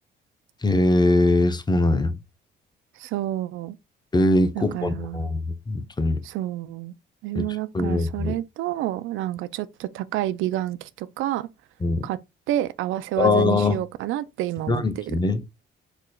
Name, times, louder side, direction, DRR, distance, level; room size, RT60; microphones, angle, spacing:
voice 1, 0.6-2.2 4.1-6.2 7.3-7.4 7.7-8.3 11.8-12.1 13.2-13.8 14.7-15.4, left 2 dB, 20° left, 0.7 m, -21 dB
voice 2, 3.0-3.8 4.5-5.3 6.2-6.9 7.2-11.5 12.0-12.2 12.5-15.1, right 13 dB, 90° right, 0.4 m, -29 dB
4.8 x 4.3 x 2.3 m
cardioid pair, 90°, 20 cm